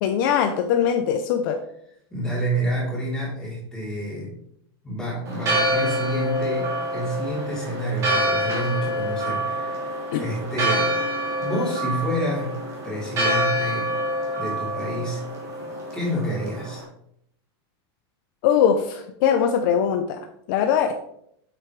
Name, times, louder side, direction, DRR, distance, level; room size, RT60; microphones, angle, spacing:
voice 1, 0.0-1.6 10.1-10.2 18.4-20.9, left 8 dB, 50° left, 6 dB, 0.7 m, -21 dB
voice 2, 2.1-4.3 4.8-11.0 11.4-13.9 14.4-15.2 15.9-16.8, right 1 dB, 5° left, -6 dB, 3.7 m, -29 dB
Church bell, 5.3-16.8, equal, 20° right, 3.2 m, -26 dB
8.6 x 7.8 x 3.3 m, 0.71 s
supercardioid pair, 165°, 14 cm